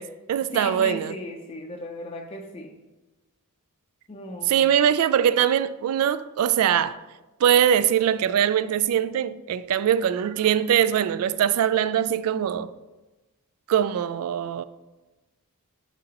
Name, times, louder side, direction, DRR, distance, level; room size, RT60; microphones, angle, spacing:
voice 1, 0.0-1.1 4.5-7.0 7.4-12.7 13.7-14.6, right 9 dB, 75° right, 0.3 m, -22 dB
voice 2, 0.5-2.7 4.1-4.7, left 2 dB, 25° left, 0.5 m, -37 dB
10.5 x 4.1 x 2.9 m
head